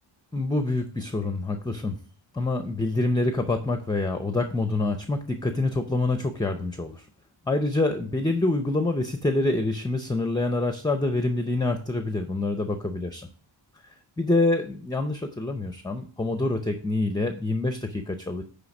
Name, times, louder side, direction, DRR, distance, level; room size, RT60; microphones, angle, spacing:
voice 1, 0.3-2.0 2.3-7.0 7.5-13.2 14.2-18.4, left 2 dB, 10° left, 7 dB, 0.5 m, -26 dB
9.4 x 3.4 x 5.9 m, 0.41 s
wide cardioid pair, 130°, 46 cm